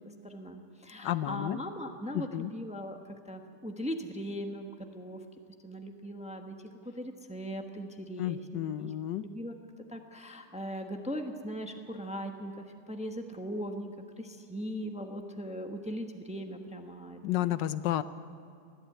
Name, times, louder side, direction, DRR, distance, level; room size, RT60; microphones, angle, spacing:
voice 1, 0.2-5.2 5.6-6.6 7.0-8.9 9.2-9.5 9.9-17.5, equal, 5° right, 4 dB, 0.9 m, -39 dB
voice 2, 1.0-1.6 2.1-2.5 8.2-9.3 17.2-18.0, left 13 dB, 80° left, 14 dB, 1.3 m, -31 dB
20.5 x 14.0 x 9.1 m, 2.4 s
omnidirectional pair, 1.9 m